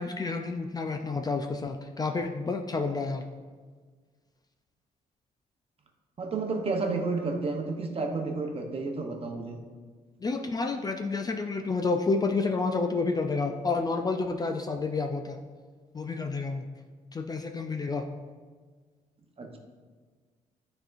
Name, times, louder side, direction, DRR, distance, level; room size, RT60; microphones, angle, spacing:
voice 1, 0.0-3.3 10.2-15.4 15.9-16.6 17.1-18.1, left 3 dB, 25° left, 5 dB, 0.4 m, -29 dB
voice 2, 6.2-9.6 19.4-19.6, right 3 dB, 40° right, 3 dB, 0.9 m, -31 dB
9.3 x 4.4 x 2.6 m, 1.5 s
cardioid pair, 110°, 15 cm